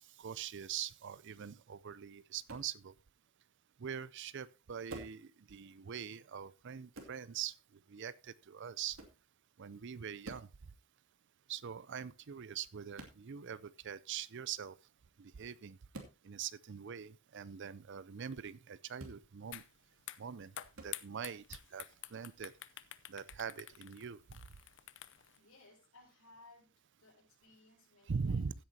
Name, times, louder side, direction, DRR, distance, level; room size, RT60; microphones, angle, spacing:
voice 1, 0.2-2.9 3.8-7.5 7.9-9.0 9.6-10.5 11.5-14.8 15.2-15.8 16.2-19.6 20.2-20.5 20.8-21.9 22.1-22.5 23.1-24.2 28.1-28.5, right 7 dB, 60° right, 0.5 m, -43 dB
sound 1, 2.5-2.7 4.9-5.2 6.9-7.2 8.9-9.2 10.2-10.5 12.9-13.2 15.9-16.2 18.9-19.2 20.7-20.9, right 2 dB, 85° right, 2.6 m, -49 dB
sound 2, 19.5-19.7 20.0-25.4, left 13 dB, 60° left, 0.7 m, -48 dB
voice 2, 25.4-28.5, left 2 dB, 85° left, 6.1 m, -62 dB
15.5 x 9.0 x 2.8 m
head